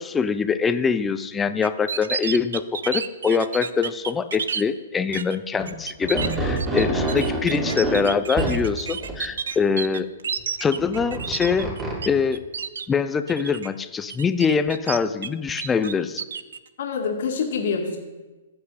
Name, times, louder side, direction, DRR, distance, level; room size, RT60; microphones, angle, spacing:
voice 1, 0.0-10.1 10.6-11.7 12.0-12.4 12.9-16.2, left 5 dB, 15° left, 11 dB, 0.6 m, -24 dB
sound 1, 1.6-4.6 5.1-5.4 5.7-12.1 12.3-12.9 13.3-13.7 14.1-15.3 15.6-16.6, right 6 dB, 80° right, 0.6 m, -30 dB
sound 2, 5.6-5.7 6.0-8.6 9.0-9.1 10.8-12.0, right 2 dB, 20° right, 3.0 m, -26 dB
voice 2, 16.8-18.0, left 5 dB, 65° left, 1 dB, 2.1 m, -26 dB
14.5 x 7.8 x 4.2 m, 1.2 s
hypercardioid pair, 130°, 0 cm